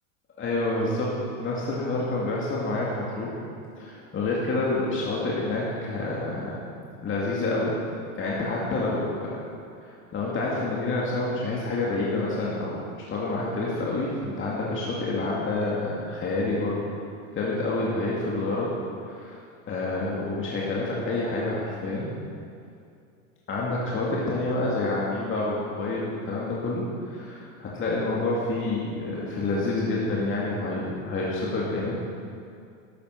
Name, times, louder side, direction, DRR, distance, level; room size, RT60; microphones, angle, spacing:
voice 1, 0.4-3.4 3.8-6.7 7.0-7.8 8.2-9.4 9.8-16.8 17.3-18.8 19.0-19.4 19.7-22.1 23.5-32.0, left 2 dB, 30° left, -5 dB, 2.3 m, -28 dB
12.5 x 8.3 x 5.8 m, 2.4 s
hypercardioid pair, 100°, 42 cm